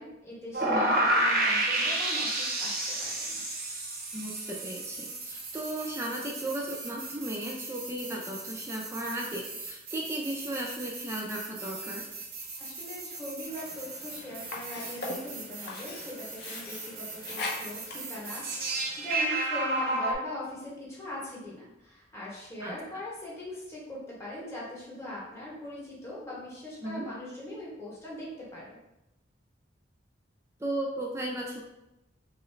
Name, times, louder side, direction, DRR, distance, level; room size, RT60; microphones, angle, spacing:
voice 1, 0.0-3.4 12.6-28.8, left 1 dB, 15° left, -6 dB, 0.9 m, -41 dB
sound 1, 0.5-20.1, right 2 dB, 50° right, 0.6 m, -33 dB
voice 2, 4.1-12.0 22.6-22.8 26.8-27.1 30.6-31.6, right 1 dB, 15° right, -2 dB, 0.4 m, -35 dB
Sink (filling or washing), 13.4-19.4, left 2 dB, 55° left, 0.6 m, -41 dB
2.9 x 2.4 x 3.1 m, 0.90 s
head